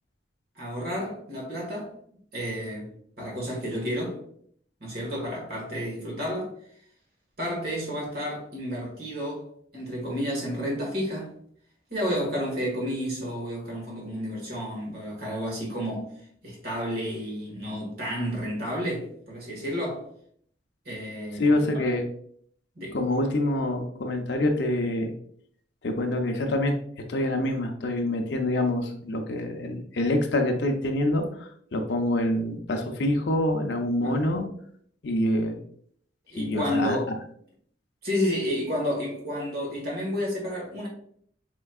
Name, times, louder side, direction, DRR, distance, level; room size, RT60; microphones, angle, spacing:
voice 1, 0.6-1.9 2.3-4.2 4.8-6.5 7.4-9.5 9.7-11.4 11.9-16.1 16.4-20.1 20.9-21.9 22.8-23.0 34.0-34.2 36.3-37.1 38.0-40.9, equal, 55° right, 1.7 m, -31 dB
voice 2, 21.3-22.1 22.9-25.1 25.8-26.8 27.1-34.5 35.0-35.6 36.4-37.0, left 1 dB, 70° left, 0.6 m, -26 dB
4.4 x 4.4 x 2.3 m
head